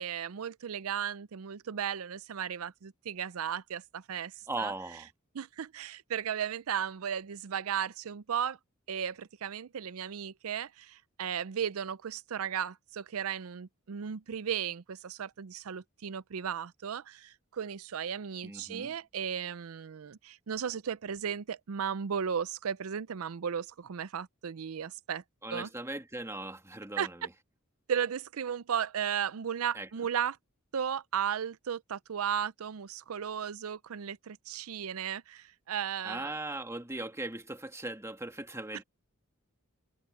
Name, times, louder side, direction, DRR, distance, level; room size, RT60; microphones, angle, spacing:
voice 1, 0.0-4.3 4.6-4.7 5.3-8.6 8.9-25.2 25.5-25.7 27.0-27.1 27.9-30.4 30.7-36.3, right 8 dB, 75° right, 0.5 m, -35 dB
voice 2, 4.5-5.1 18.4-18.9 25.4-27.3 29.7-29.9 36.0-38.8, right 2 dB, 15° right, 1.9 m, -39 dB
head